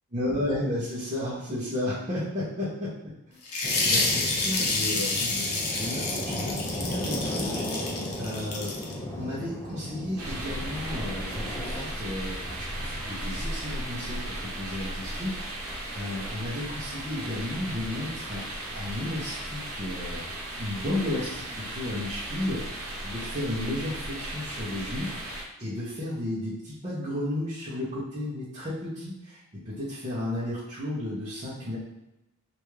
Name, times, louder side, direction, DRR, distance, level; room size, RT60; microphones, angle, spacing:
voice 1, 0.1-3.1 3.8-15.3 15.6-18.5 18.7-25.1 25.6-31.8, left 1 dB, 30° right, -10 dB, 0.8 m, -33 dB
sound 1, 3.5-8.9, left 3 dB, 80° left, 0.7 m, -29 dB
sound 2, 3.6-11.8, left 1 dB, 10° left, 0.4 m, -35 dB
sound 3, 10.2-25.4, right 1 dB, 80° right, 0.8 m, -36 dB
3.4 x 2.6 x 3.1 m, 0.91 s
head